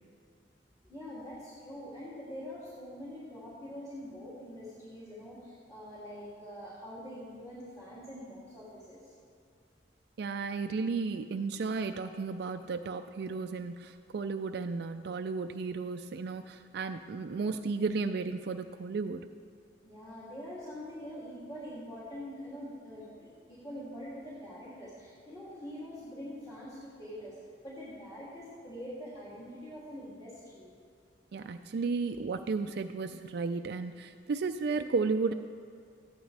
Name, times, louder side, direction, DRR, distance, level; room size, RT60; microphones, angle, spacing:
voice 1, 0.8-9.1 19.8-27.4 27.6-30.7, equal, 25° left, -11 dB, 2.9 m, -44 dB
voice 2, 10.2-19.2 31.3-35.3, right 4 dB, 65° right, 7 dB, 0.4 m, -33 dB
14.5 x 11.0 x 3.4 m, 2.3 s
head